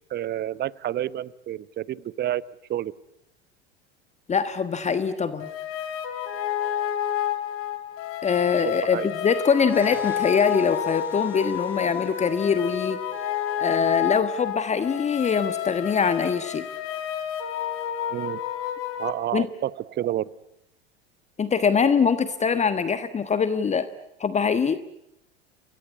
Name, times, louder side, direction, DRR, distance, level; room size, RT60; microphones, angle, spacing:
voice 1, 0.1-2.4 2.7-2.9 8.6-9.1 18.1-18.4 19.0-20.3, right 12 dB, 30° right, 20 dB, 0.9 m, -29 dB
voice 2, 4.3-5.5 8.2-13.0 13.6-16.7 19.3-19.5 21.4-23.9 24.2-24.8, left 6 dB, 20° left, 12 dB, 1.3 m, -23 dB
sound 1, 5.4-19.1, left 10 dB, 45° left, 3.3 m, -30 dB
sound 2, 9.6-13.5, right 1 dB, 5° right, 6.0 m, -48 dB
28.5 x 23.0 x 8.5 m, 0.83 s
figure-of-eight pair, 80°, 32 cm